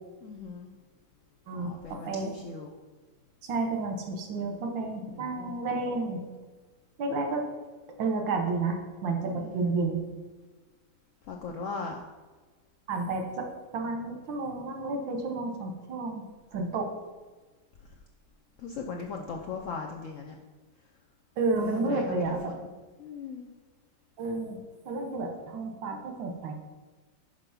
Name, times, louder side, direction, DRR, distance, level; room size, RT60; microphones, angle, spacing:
voice 1, 0.2-0.7 1.5-2.7 5.0-5.5 9.3-9.8 11.3-12.0 18.6-20.3 21.6-22.5 23.0-23.5, left 5 dB, 75° left, 2 dB, 0.7 m, -39 dB
voice 2, 1.5-2.3 3.4-6.3 7.0-7.4 8.0-10.0 12.9-13.5 13.7-16.2 16.5-16.9 21.4-22.5 24.2-24.6 24.9-26.5, right 3 dB, 85° right, 3 dB, 1.8 m, -31 dB
6.1 x 5.1 x 5.7 m, 1.3 s
omnidirectional pair, 2.0 m